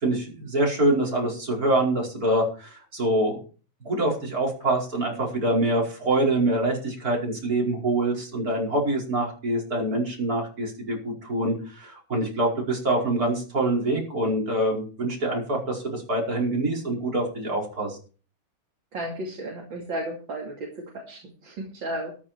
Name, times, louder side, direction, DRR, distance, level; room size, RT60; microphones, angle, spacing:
voice 1, 0.0-3.4 3.8-18.0, right 1 dB, 45° right, -2 dB, 5.6 m, -25 dB
voice 2, 18.9-22.1, right 1 dB, 75° right, 0 dB, 3.2 m, -34 dB
13.5 x 12.0 x 4.5 m, 0.37 s
omnidirectional pair, 2.1 m